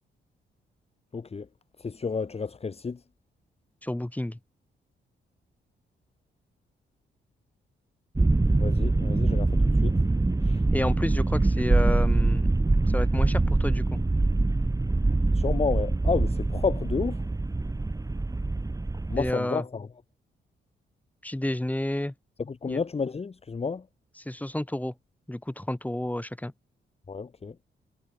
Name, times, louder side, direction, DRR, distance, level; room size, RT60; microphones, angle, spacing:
voice 1, 1.1-1.5 1.8-3.0 8.6-10.0 10.4-10.6 15.3-17.2 19.1-19.9 22.4-23.8 27.1-27.5, left 5 dB, 30° left, 1.4 m, -31 dB
voice 2, 3.8-4.4 10.7-12.6 12.9-14.0 19.2-19.6 21.2-22.1 22.7-22.8 24.3-24.9 25.3-26.5, left 1 dB, 10° left, 7.1 m, -30 dB
sound 1, 8.1-19.3, right 2 dB, 20° right, 2.3 m, -24 dB
cardioid pair, 80°, 19 cm